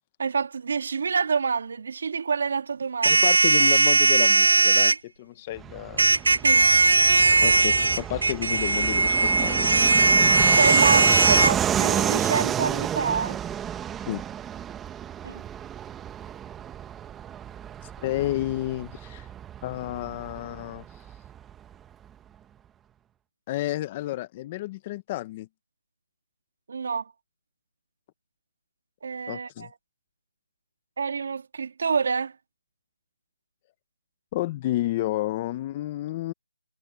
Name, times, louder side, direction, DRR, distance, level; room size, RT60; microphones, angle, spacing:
voice 1, 0.2-3.3 6.4-6.7 10.6-13.4 15.2-15.4 26.7-27.1 29.0-29.7 31.0-32.4, right 5 dB, 45° right, 2.3 m, -27 dB
voice 2, 3.0-6.1 7.4-10.0 14.1-14.2 18.0-19.3 19.6-20.8 23.5-25.5 29.3-29.7 34.3-36.3, left 15 dB, 15° left, 0.8 m, -31 dB
sound 1, 3.0-5.0 6.0-11.5, right 3 dB, 60° right, 0.6 m, -19 dB
Fixed-wing aircraft airplane, 5.6-21.7, right 9 dB, 5° right, 1.1 m, -31 dB
figure-of-eight pair, 170°, 0 cm